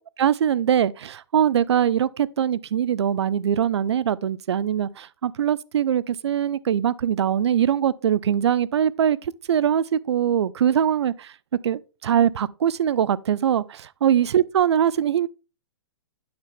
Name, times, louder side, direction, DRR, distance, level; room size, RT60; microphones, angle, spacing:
voice 1, 0.2-9.2 9.5-11.3 11.6-15.3, right 9 dB, 85° right, 0.5 m, -22 dB
8.7 x 5.8 x 3.4 m
hypercardioid pair, 170°, 14 cm